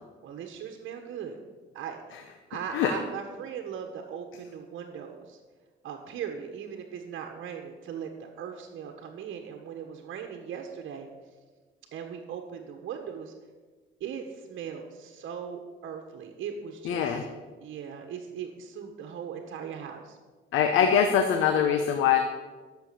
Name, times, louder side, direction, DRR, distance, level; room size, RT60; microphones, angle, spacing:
voice 1, 0.2-1.4 1.7-2.2 2.5-5.4 5.8-11.1 11.9-13.3 14.0-17.2 17.6-20.2, right 7 dB, 75° right, 3 dB, 1.3 m, -39 dB
voice 2, 16.8-17.2 20.5-22.2, left 8 dB, 90° left, 6 dB, 0.9 m, -23 dB
11.5 x 6.9 x 6.8 m, 1.4 s
cardioid pair, 90°, 20 cm